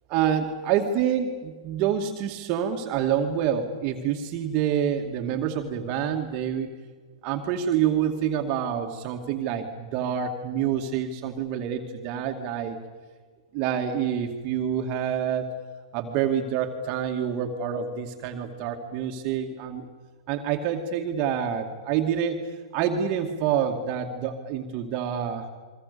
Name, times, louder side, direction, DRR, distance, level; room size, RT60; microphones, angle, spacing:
voice 1, 0.1-6.7 7.2-12.8 13.5-15.5 15.9-19.9 20.3-22.4 22.7-25.5, right 8 dB, 40° right, 3 dB, 2.4 m, -27 dB
29.0 x 23.5 x 7.0 m, 1.4 s
hypercardioid pair, 120°, 3 cm